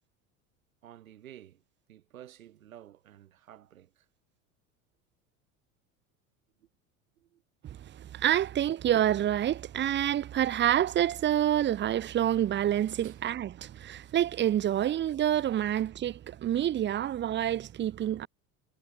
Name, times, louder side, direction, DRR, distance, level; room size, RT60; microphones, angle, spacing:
voice 1, 0.8-1.6 1.9-4.1 6.6-6.7 7.2-7.4 13.0-13.2 15.7-15.8, right 12 dB, 85° right, 6.8 m, -52 dB
voice 2, 8.1-18.3, right 11 dB, 30° right, 0.7 m, -27 dB
hypercardioid pair, 80°, 40 cm